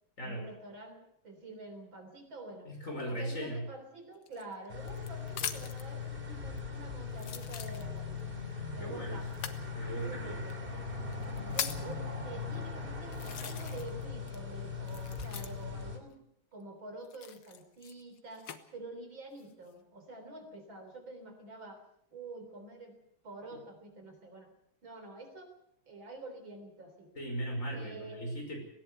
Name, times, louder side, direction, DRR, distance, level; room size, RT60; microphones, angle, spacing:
voice 1, 0.2-2.7 3.1-8.1 8.7-9.6 10.0-10.7 11.5-16.2 16.5-21.8 22.1-24.5 24.8-25.5 25.9-27.1 27.7-28.2, right 2 dB, 65° right, 6 dB, 4.3 m, -48 dB
voice 2, 2.7-3.6 8.8-9.2 9.7-10.4 27.2-28.6, right 1 dB, 35° left, 2 dB, 5.8 m, -38 dB
sound 1, 4.2-5.9 6.6-6.7 7.2-8.2 9.3-9.6 10.5-10.6 11.1-11.9 12.6-12.7 13.1-14.0 14.3-15.8 17.0-18.6 19.3-19.7, left 9 dB, 80° left, 2.1 m, -41 dB
sound 2, 4.7-16.0, left 4 dB, 25° right, 3.1 m, -40 dB
19.5 x 17.0 x 8.1 m, 0.72 s
omnidirectional pair, 2.3 m